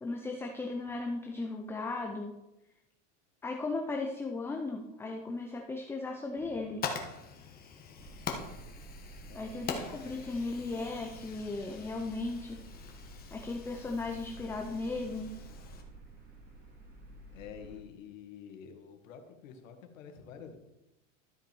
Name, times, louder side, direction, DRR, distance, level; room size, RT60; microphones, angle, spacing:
voice 1, 0.0-2.3 3.4-6.8 9.3-12.6 13.3-15.3, left 3 dB, 5° left, 2 dB, 0.5 m, -36 dB
Fire, 6.4-15.8, left 5 dB, 25° left, 1.3 m, -43 dB
sound 1, 8.0-17.8, right 2 dB, 25° right, 2.0 m, -51 dB
voice 2, 9.3-10.5 17.3-20.6, left 7 dB, 85° left, 5 dB, 1.8 m, -49 dB
13.0 x 5.8 x 4.5 m, 0.93 s
supercardioid pair, 140°, 39 cm